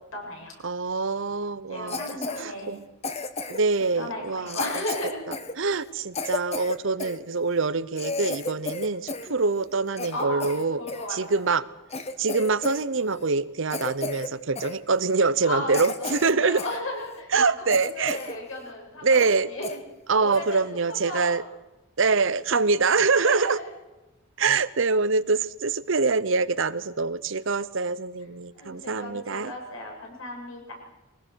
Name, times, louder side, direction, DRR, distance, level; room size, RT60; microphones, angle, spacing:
voice 1, 0.1-0.5 1.7-2.7 3.8-5.2 10.1-10.5 10.8-11.4 15.4-15.7 16.0-19.7 20.2-21.4 23.2-23.7 28.5-30.7, left 1 dB, 70° left, 0 dB, 7.4 m, -35 dB
voice 2, 0.6-2.0 2.4-2.8 3.5-4.6 5.6-10.8 11.1-11.7 12.2-16.6 17.3-18.2 19.0-19.5 20.1-21.4 22.0-23.6 24.4-29.5, right 4 dB, 60° right, 17 dB, 0.8 m, -24 dB
Cough, 1.9-2.4 3.0-3.7 4.5-7.2 7.6-7.7 8.0-9.3 9.6-11.1 11.5-11.6 11.9-12.8 13.1-13.3 13.7-14.3 14.6-14.8 15.3-15.4 15.7-16.8 17.2-17.3 17.7-18.4 18.7-18.8 19.1-19.4 19.6-19.8 20.3-20.5, left 3 dB, 30° left, 1.1 m, -33 dB
23.0 x 19.0 x 6.3 m, 1.0 s
head